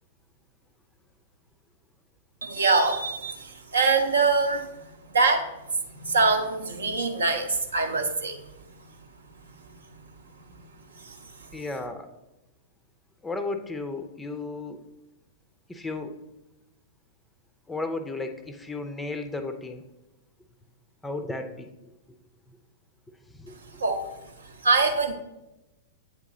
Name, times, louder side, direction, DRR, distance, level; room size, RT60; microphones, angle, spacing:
voice 1, 2.4-4.8 5.1-5.4 5.9-8.4 11.0-11.1 23.8-24.1 24.6-25.1, right 4 dB, 75° right, 4 dB, 0.7 m, -24 dB
voice 2, 11.5-12.1 13.2-14.8 15.7-16.2 17.7-19.8 21.0-21.7 23.3-23.5, left 3 dB, 10° left, 8 dB, 0.4 m, -34 dB
8.5 x 3.0 x 3.7 m, 0.97 s
figure-of-eight pair, 100°, 0 cm